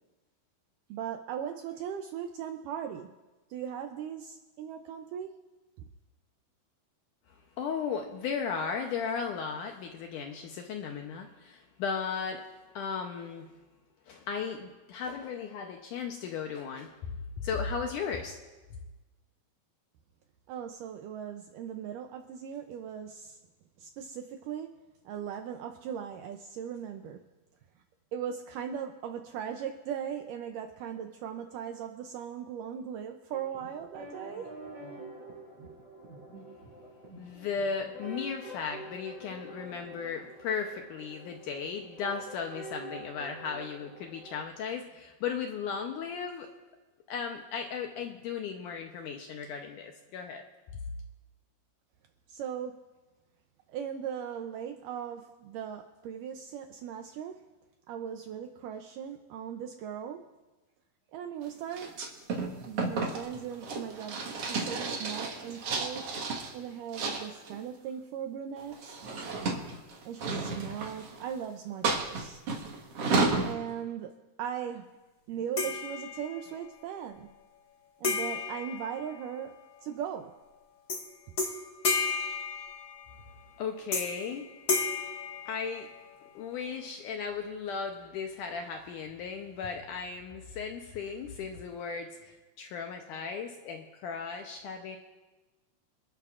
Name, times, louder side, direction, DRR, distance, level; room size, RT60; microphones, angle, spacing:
voice 1, 0.9-3.1 3.5-5.4 20.5-23.4 23.8-24.7 25.1-27.2 28.1-34.5 52.3-52.8 53.7-57.4 57.9-60.2 61.1-61.9 62.7-66.1 66.5-69.0 70.0-72.4 73.4-74.1 74.4-74.9 75.3-77.3 78.0-79.6 79.8-80.3, right 8 dB, 80° right, 6 dB, 1.9 m, -38 dB
voice 2, 7.6-12.4 12.8-13.5 14.1-18.4 37.2-46.5 47.1-50.4 83.6-84.5 85.5-85.9 86.3-95.0, left 6 dB, 75° left, 3 dB, 2.0 m, -36 dB
sound 1, 33.3-44.4, right 1 dB, 35° right, 3.4 m, -47 dB
sound 2, 61.7-66.5 66.9-67.6 68.6-71.3 71.8-73.5, right 3 dB, 50° right, 1.9 m, -32 dB
sound 3, 75.6-76.5 78.0-79.6 80.9-81.1 81.4-83.2 83.9-84.3 84.7-86.1, left 4 dB, 45° left, 1.3 m, -33 dB
26.5 x 12.0 x 2.5 m, 1.2 s
omnidirectional pair, 4.4 m